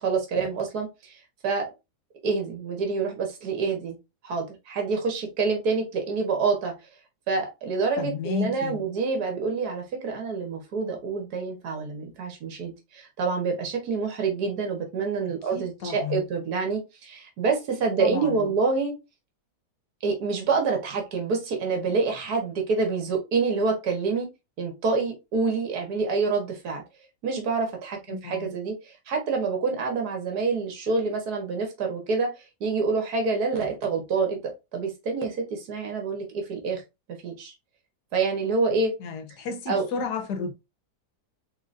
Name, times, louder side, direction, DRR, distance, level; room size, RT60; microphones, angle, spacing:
voice 1, 0.0-1.6 2.2-4.0 4.2-6.7 7.3-18.9 20.0-24.3 24.6-26.8 27.2-32.3 32.6-36.8 37.1-37.5 38.1-38.9 39.7-39.9, right 4 dB, 65° right, 1.7 m, -27 dB
voice 2, 8.0-8.8 15.5-16.2 18.0-18.5 28.1-28.5 39.0-40.5, left 5 dB, 75° left, 1.4 m, -32 dB
3.8 x 3.7 x 2.5 m
omnidirectional pair, 1.8 m